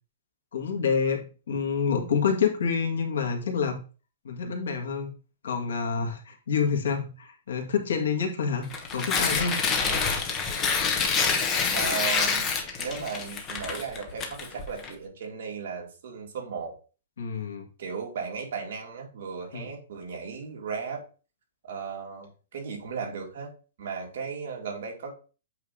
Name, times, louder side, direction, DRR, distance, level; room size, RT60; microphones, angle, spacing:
voice 1, 0.5-3.7 4.2-5.1 5.4-8.7 8.9-9.6 17.2-17.6 19.5-19.7, left 6 dB, 85° left, 2 dB, 1.7 m, -27 dB
Tearing, 8.6-14.9, left 5 dB, 15° left, 0.8 m, -27 dB
voice 2, 11.7-12.5 12.8-16.7 17.8-21.0 21.7-23.5 23.8-25.2, right 5 dB, 50° right, -1 dB, 2.3 m, -36 dB
8.1 x 2.8 x 4.9 m, 0.35 s
hypercardioid pair, 175°, 0 cm